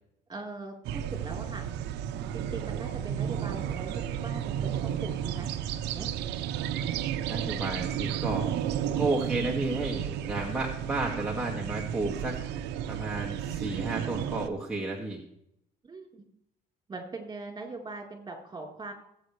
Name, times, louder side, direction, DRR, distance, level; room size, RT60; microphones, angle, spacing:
voice 1, 0.3-1.7 2.3-5.5 5.9-6.1 8.8-9.1 15.8-16.2 16.9-18.9, right 3 dB, 25° right, 1 dB, 4.0 m, -41 dB
sound 1, 0.8-14.5, right 10 dB, 85° right, 0.8 m, -33 dB
voice 2, 7.3-8.5 9.0-15.2, right 2 dB, 5° right, -4 dB, 2.1 m, -32 dB
20.5 x 8.7 x 3.3 m, 0.76 s
cardioid pair, 110°, 17 cm